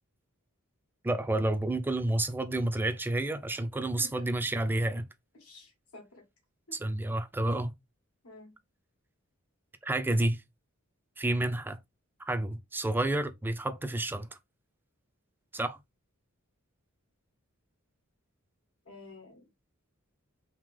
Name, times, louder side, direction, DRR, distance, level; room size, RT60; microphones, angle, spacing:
voice 1, 1.0-5.1 6.7-7.7 9.8-10.4 11.2-11.8 12.3-14.3 15.5-15.8, right 1 dB, 10° right, 0.4 m, -30 dB
voice 2, 4.0-4.5 5.3-6.2 6.7-6.8 8.2-8.5 18.8-19.4, left 2 dB, 80° left, 1.6 m, -51 dB
3.6 x 2.8 x 3.2 m
head